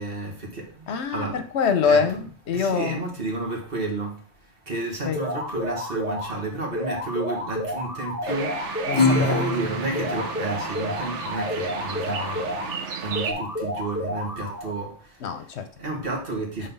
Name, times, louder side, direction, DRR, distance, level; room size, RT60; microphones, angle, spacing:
voice 1, 0.0-0.9 1.1-1.4 1.8-2.3 2.5-4.2 4.7-8.5 9.2-12.6 13.0-15.0 15.8-16.7, right 2 dB, 55° right, 1.8 m, -31 dB
voice 2, 0.9-2.2 2.5-3.0 5.0-5.3 8.9-9.5 15.2-15.6, left 6 dB, 70° left, 1.0 m, -24 dB
sound 1, 5.2-6.4 6.8-9.6 10.0-12.8 13.2-14.7, left 1 dB, 10° right, 2.3 m, -30 dB
sound 2, 8.2-13.3, right 6 dB, 90° right, 1.2 m, -34 dB
Acoustic guitar / Strum, 8.9-11.8, left 2 dB, 20° left, 0.8 m, -26 dB
6.0 x 3.8 x 5.4 m
omnidirectional pair, 1.2 m